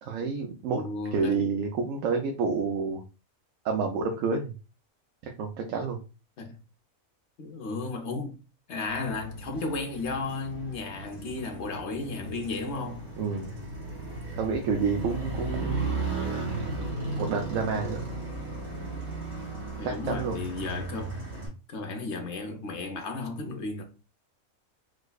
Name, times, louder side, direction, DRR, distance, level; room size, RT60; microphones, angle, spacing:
voice 1, 0.0-0.8 1.1-3.0 3.6-4.5 5.2-6.0 13.2-13.5 14.4-15.9 17.1-18.1 19.8-20.4, right 5 dB, 70° right, 0.9 m, -29 dB
voice 2, 0.7-1.4 6.4-6.6 7.4-8.4 8.7-13.1 19.8-21.2 21.7-23.8, left 3 dB, 60° left, 1.0 m, -34 dB
Motorcycle, 8.9-21.5, right 2 dB, 85° right, 2.2 m, -35 dB
4.8 x 2.1 x 2.3 m
omnidirectional pair, 1.5 m